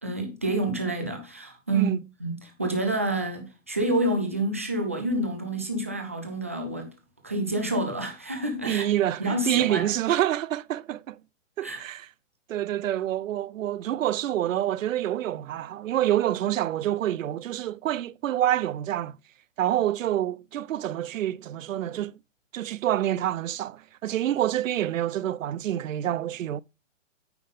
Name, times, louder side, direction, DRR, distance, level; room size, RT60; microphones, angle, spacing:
voice 1, 0.0-6.9 7.2-8.9 9.2-9.9 11.6-11.8, right 1 dB, 15° right, 0.3 m, -28 dB
voice 2, 8.7-11.2 11.6-12.1 12.5-19.2 19.6-22.1 22.5-26.6, right 12 dB, 85° right, 0.5 m, -27 dB
9.1 x 3.5 x 5.2 m
hypercardioid pair, 150°, 38 cm